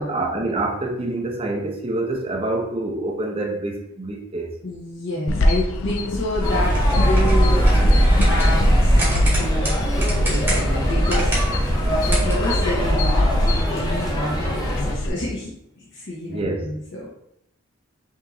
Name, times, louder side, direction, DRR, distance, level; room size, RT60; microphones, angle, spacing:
voice 1, 0.0-4.5 16.3-16.7, right 2 dB, 25° right, 0.6 m, -26 dB
voice 2, 4.6-7.6 8.1-17.1, left 1 dB, 55° left, 0.9 m, -29 dB
mallerenga-carbonera DM, 5.3-15.1, left 1 dB, 70° left, 0.4 m, -26 dB
sound 1, 6.3-13.6, right 1 dB, 10° right, 1.0 m, -20 dB
sound 2, 6.4-14.9, left 1 dB, 20° left, 0.8 m, -26 dB
5.3 x 3.0 x 2.6 m
head